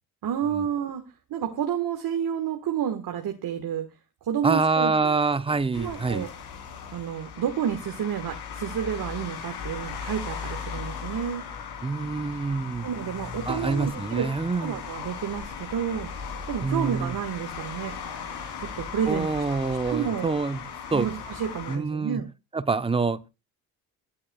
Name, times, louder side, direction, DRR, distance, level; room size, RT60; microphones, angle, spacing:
voice 1, 0.2-1.0 1.3-3.9 4.2-5.1 5.8-6.3 6.9-11.4 12.8-14.3 14.6-16.1 16.5-18.0 18.6-19.3 19.9-20.3 20.9-22.2, right 9 dB, 55° right, 1.5 m, -30 dB
voice 2, 4.4-6.3 11.8-12.9 13.4-14.8 16.6-17.2 19.1-20.6 20.9-21.1 21.7-22.2 22.5-23.3, right 4 dB, 15° right, 0.8 m, -26 dB
sound 1, 5.7-21.8, left 6 dB, 65° left, 3.1 m, -37 dB
23.5 x 8.6 x 2.3 m
hypercardioid pair, 60°, 42 cm